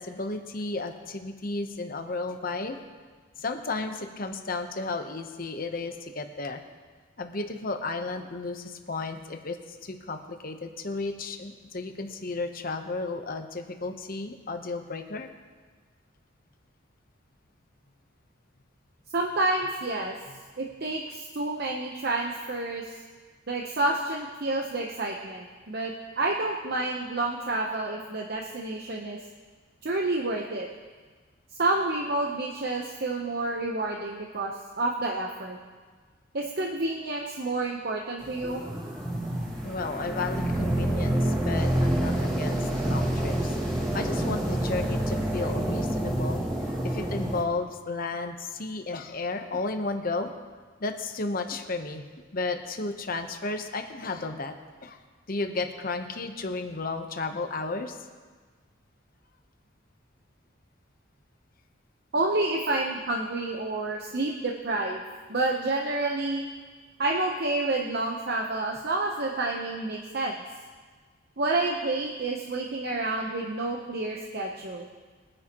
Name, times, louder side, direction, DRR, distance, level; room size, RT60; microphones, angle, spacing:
voice 1, 0.0-2.8 3.4-6.6 7.2-15.3 20.3-20.4 39.6-43.7 43.9-46.4 46.8-50.3 50.8-54.5 54.8-55.0 55.3-58.0, left 3 dB, 45° left, 6 dB, 1.0 m, -33 dB
voice 2, 19.1-20.1 20.6-22.9 23.5-29.2 29.8-30.7 31.6-35.6 36.3-38.6 62.1-65.0 65.3-66.4 67.0-70.3 71.4-74.9, right 2 dB, 50° right, 0 dB, 0.9 m, -29 dB
sound 1, 38.2-47.4, right 1 dB, 25° right, 2.5 m, -28 dB
22.0 x 9.7 x 3.0 m, 1.5 s
head